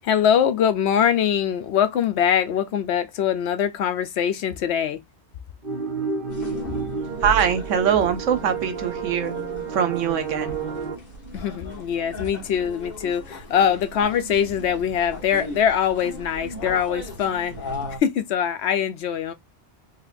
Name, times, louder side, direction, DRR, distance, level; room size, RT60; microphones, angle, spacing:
voice 1, 0.0-5.0 11.3-17.6 18.0-19.3, left 8 dB, 65° left, 0.8 m, -23 dB
sound 1, 5.6-11.0, right 5 dB, 45° right, 1.2 m, -30 dB
sound 2, 6.3-18.0, equal, 35° left, 1.5 m, -37 dB
voice 2, 7.2-9.3 9.7-10.6, right 8 dB, 80° right, 1.1 m, -22 dB
3.9 x 2.8 x 2.5 m
omnidirectional pair, 1.3 m